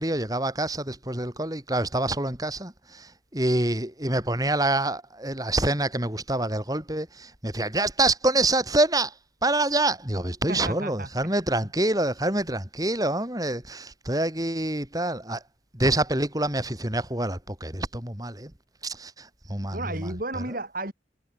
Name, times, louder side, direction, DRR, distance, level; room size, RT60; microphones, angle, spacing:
voice 1, 0.0-9.1 9.4-15.4 15.7-18.5 18.8-20.1, right 2 dB, 20° right, 5.0 m, -26 dB
voice 2, 10.5-11.1 11.6-11.7 19.7-20.9, right 2 dB, 50° right, 6.1 m, -33 dB
head